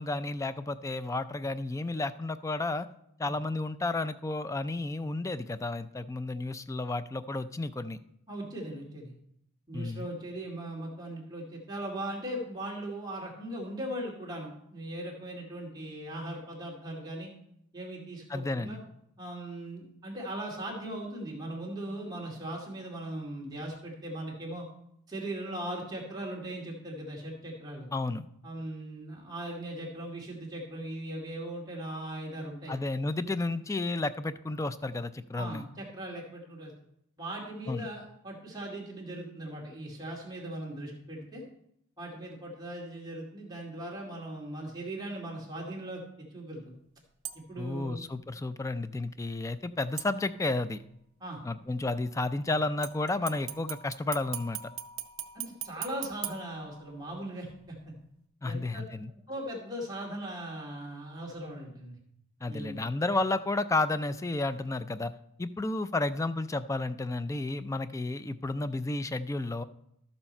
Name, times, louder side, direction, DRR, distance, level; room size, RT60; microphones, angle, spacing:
voice 1, 0.0-2.9 3.2-8.0 9.7-10.1 18.3-18.8 27.9-28.3 32.7-35.7 37.7-37.9 47.6-50.8 51.4-54.6 58.4-59.1 62.4-65.1 65.4-69.6, left 2 dB, 15° left, 13 dB, 0.3 m, -32 dB
voice 2, 8.3-9.1 9.7-17.3 17.7-18.8 19.2-24.7 25.1-27.9 28.4-32.7 35.3-36.7 37.2-41.4 42.0-46.7 47.5-48.1 51.2-51.4 55.3-57.9 58.4-58.8 59.3-62.0 62.5-62.8, right 1 dB, 20° right, -3 dB, 2.4 m, -39 dB
sound 1, 47.2-47.7 50.0-50.7 52.8-57.2 57.6-57.7, right 11 dB, 65° right, 0.6 m, -41 dB
12.0 x 7.1 x 4.3 m, 0.76 s
head